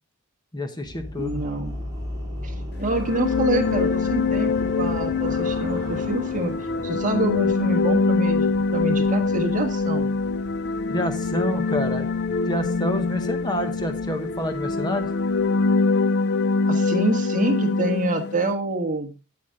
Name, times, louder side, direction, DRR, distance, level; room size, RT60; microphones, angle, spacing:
voice 1, 0.5-1.4 10.9-12.1 12.5-15.1, equal, 20° left, 7 dB, 1.0 m, -28 dB
sound 1, 0.8-15.7, equal, 20° right, 4.5 m, -38 dB
voice 2, 1.2-1.8 2.4-6.5 6.8-10.1 16.7-19.1, right 2 dB, 35° right, 5 dB, 1.4 m, -27 dB
sound 2, 2.8-18.5, left 4 dB, 50° left, 0.5 m, -24 dB
8.4 x 8.3 x 3.6 m, 0.31 s
head